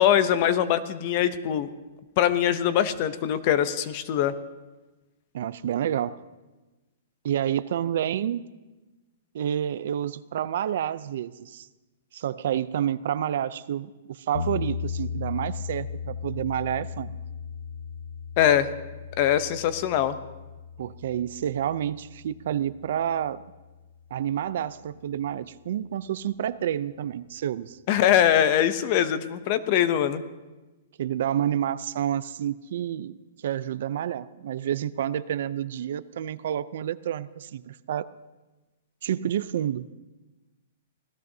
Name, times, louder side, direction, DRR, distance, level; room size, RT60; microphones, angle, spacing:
voice 1, 0.0-1.7 2.2-4.3 18.4-18.7 19.2-20.2 27.9-30.2, left 10 dB, 30° left, 13 dB, 0.6 m, -22 dB
voice 2, 5.3-6.2 7.2-8.4 9.3-11.7 12.1-17.2 20.8-23.5 24.1-27.8 31.0-33.2 33.4-38.1 39.0-39.9, right 10 dB, 50° right, 16 dB, 0.4 m, -29 dB
sound 1, 14.3-24.4, left 6 dB, 70° left, 0.7 m, -37 dB
25.5 x 17.5 x 2.7 m, 1.1 s
hypercardioid pair, 175°, 0 cm